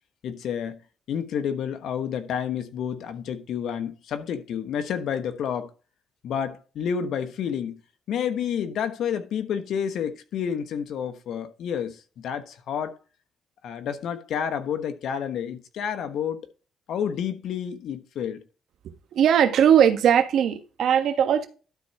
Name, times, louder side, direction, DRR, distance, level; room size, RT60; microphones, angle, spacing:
voice 1, 0.2-0.8 1.1-5.7 6.2-7.8 8.1-13.0 13.6-16.4 16.9-18.4, left 8 dB, 80° left, 1.2 m, -29 dB
voice 2, 19.1-21.5, right 9 dB, 75° right, 1.4 m, -19 dB
12.5 x 4.1 x 4.7 m
cardioid pair, 80°, 0 cm